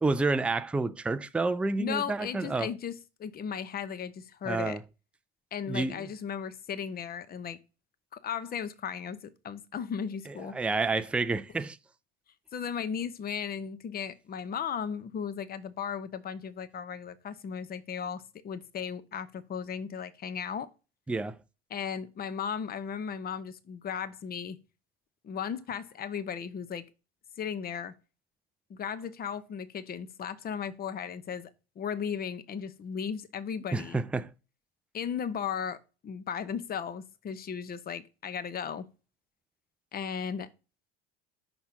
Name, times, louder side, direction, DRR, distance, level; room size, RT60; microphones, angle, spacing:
voice 1, 0.0-2.7 4.5-4.8 5.7-6.0 10.5-11.8 21.1-21.3 33.7-34.3, right 3 dB, 5° right, 0.3 m, -29 dB
voice 2, 1.8-4.8 5.5-7.6 8.1-10.5 12.5-20.7 21.7-24.6 25.2-26.8 27.4-27.9 28.7-31.5 31.8-34.0 34.9-35.8 36.0-38.9 39.9-40.5, left 7 dB, 30° left, 0.8 m, -36 dB
6.0 x 4.1 x 5.1 m
hypercardioid pair, 90°, 31 cm